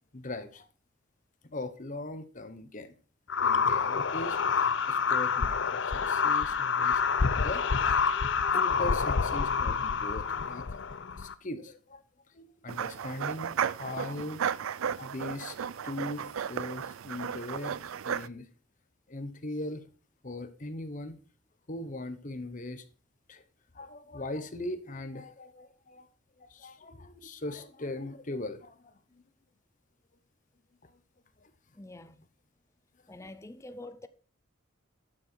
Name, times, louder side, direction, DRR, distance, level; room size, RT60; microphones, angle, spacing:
voice 1, 0.1-0.7 1.5-2.9 3.4-10.8 11.1-12.0 12.3-14.4 15.0-18.5 19.1-19.8 20.2-21.2 21.7-22.8 23.3-23.4 23.7-26.1 26.4-29.2 30.8-30.9 31.4-31.5 33.2-33.3, left 2 dB, 40° left, 1.0 m, -40 dB
sound 1, 3.3-11.3, left 5 dB, 60° left, 0.6 m, -27 dB
sound 2, 12.7-18.3, right 8 dB, 85° right, 0.4 m, -34 dB
voice 2, 31.8-32.2 33.1-34.1, left 2 dB, 15° left, 0.6 m, -45 dB
11.5 x 6.6 x 4.5 m
head